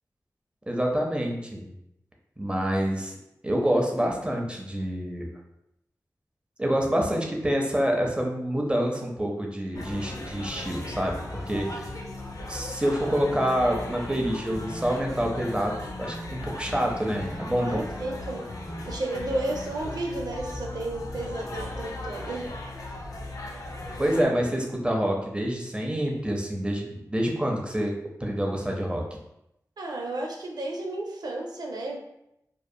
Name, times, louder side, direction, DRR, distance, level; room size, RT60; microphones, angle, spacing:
voice 1, 0.7-1.7 2.4-3.1 3.4-5.3 6.6-11.9 12.5-17.8 24.0-28.0 28.2-29.0, equal, 15° right, 0 dB, 0.6 m, -27 dB
sound 1, 9.7-24.2, left 1 dB, 55° left, 0.4 m, -37 dB
voice 2, 17.6-18.4 18.8-22.5 29.8-32.0, right 2 dB, 75° right, 1 dB, 0.5 m, -32 dB
2.7 x 2.3 x 2.2 m, 0.82 s
cardioid pair, 45°, 7 cm